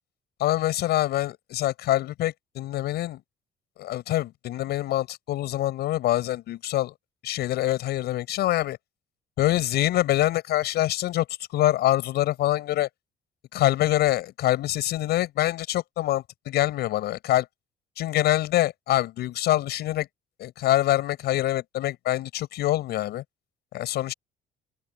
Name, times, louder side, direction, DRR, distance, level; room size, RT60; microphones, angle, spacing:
voice 1, 0.4-3.2 3.8-6.9 7.2-8.8 9.4-11.2 11.5-12.9 13.5-17.4 18.0-20.1 20.4-23.2 23.7-24.1, left 14 dB, 75° left, 6.7 m, -25 dB
open air
cardioid pair, 110°, 17 cm